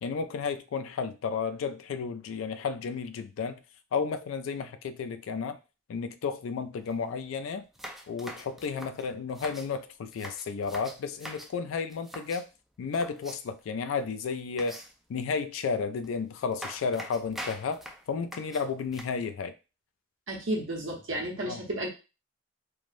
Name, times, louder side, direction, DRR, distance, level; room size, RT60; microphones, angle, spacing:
voice 1, 0.0-3.6 3.9-5.6 5.9-7.6 8.1-12.5 12.8-14.8 15.1-19.5 21.5-21.6, left 5 dB, 80° left, 0.3 m, -32 dB
sound 1, 6.8-6.9 7.2-7.3 7.7-9.7 10.1-11.5 11.9-12.5 12.9-13.6 14.6-15.1 16.0-16.1 16.5-19.0, equal, ahead, 0.3 m, -43 dB
voice 2, 20.3-21.9, right 1 dB, 70° right, 0.9 m, -32 dB
3.2 x 2.0 x 2.5 m
head